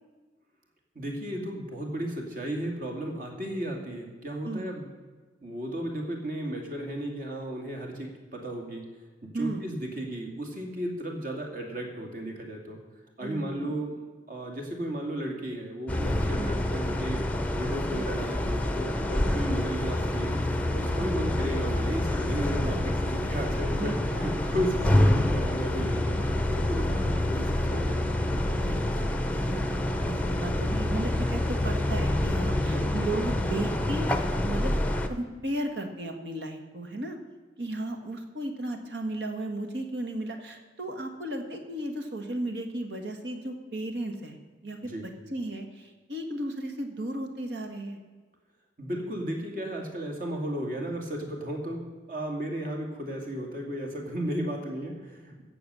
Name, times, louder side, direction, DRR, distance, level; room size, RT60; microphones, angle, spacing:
voice 1, 0.9-4.9 5.4-8.8 9.2-12.8 13.2-14.0 14.3-17.2 17.5-20.4 20.7-23.9 24.2-28.0 32.5-32.9 44.8-45.1 48.8-55.4, equal, 45° right, 2 dB, 2.5 m, -34 dB
voice 2, 9.3-9.6 13.2-13.8 16.4-16.6 17.9-18.0 19.2-19.4 21.0-21.2 23.7-24.9 26.9-27.3 28.6-34.8 35.1-37.2 37.6-44.3 44.6-44.9 45.3-48.0, right 1 dB, 65° right, 5 dB, 1.7 m, -35 dB
sound 1, 15.9-35.1, left 1 dB, 10° left, 0.7 m, -27 dB
16.0 x 7.1 x 6.9 m, 1.3 s
head